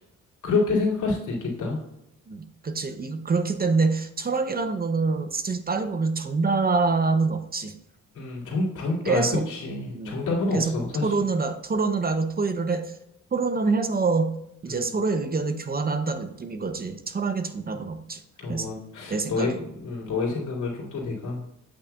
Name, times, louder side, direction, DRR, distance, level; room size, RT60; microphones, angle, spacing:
voice 1, 0.4-1.8 8.1-11.1 14.7-14.9 18.4-21.4, left 3 dB, 75° left, -3 dB, 2.7 m, -28 dB
voice 2, 2.3-7.7 9.0-9.4 9.9-10.2 10.5-10.8 11.0-12.9 13.3-14.3 14.6-18.2 18.5-18.7 19.1-19.5, right 4 dB, 30° right, 9 dB, 0.6 m, -25 dB
8.7 x 5.8 x 2.3 m, 0.83 s
cardioid pair, 100°, 31 cm